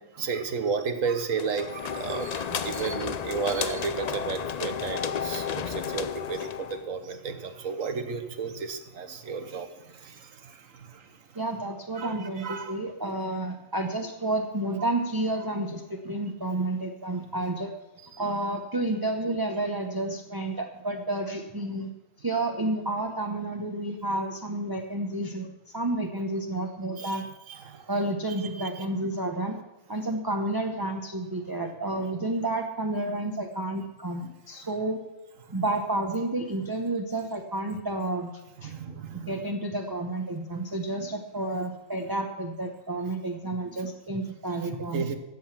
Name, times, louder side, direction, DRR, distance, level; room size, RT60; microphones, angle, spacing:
voice 1, 0.1-11.1 12.0-12.8 27.0-27.9 28.6-28.9 38.6-39.4 44.9-45.2, right 5 dB, 80° right, 9 dB, 1.6 m, -33 dB
sound 1, 1.4-6.9, left 7 dB, 60° left, 0.4 m, -32 dB
voice 2, 11.3-17.7 18.2-21.9 22.2-27.2 27.9-29.6 29.9-35.0 35.5-38.3 38.6-38.7 39.3-45.1, right 2 dB, 20° right, 2 dB, 0.9 m, -30 dB
13.5 x 8.0 x 5.9 m, 1.1 s
omnidirectional pair, 1.3 m